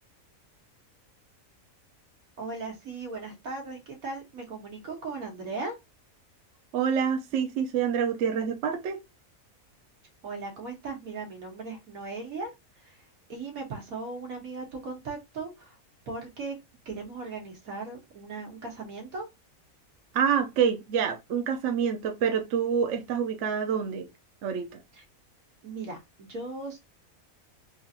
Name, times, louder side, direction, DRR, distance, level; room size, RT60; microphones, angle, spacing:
voice 1, 2.4-5.7 10.2-13.0 13.3-15.8 16.1-16.6 16.8-19.3 24.9-25.0 25.6-26.8, right 3 dB, 85° right, 1.6 m, -38 dB
voice 2, 6.7-9.0 20.1-24.1 24.4-24.8, right 7 dB, 65° right, 0.9 m, -27 dB
3.8 x 2.5 x 2.7 m
omnidirectional pair, 1.4 m